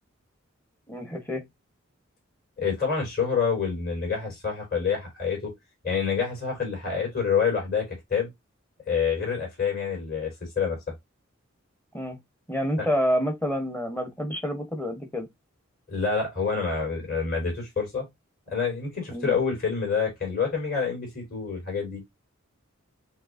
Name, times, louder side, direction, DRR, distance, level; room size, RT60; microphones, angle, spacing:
voice 1, 0.9-1.5 11.9-12.2 12.5-15.3 19.1-19.3, equal, 10° left, 0.9 m, -28 dB
voice 2, 2.6-5.5 5.8-8.3 8.9-10.8 15.9-18.1 18.5-22.0, left 5 dB, 40° left, 3.5 m, -27 dB
6.0 x 2.9 x 2.5 m
head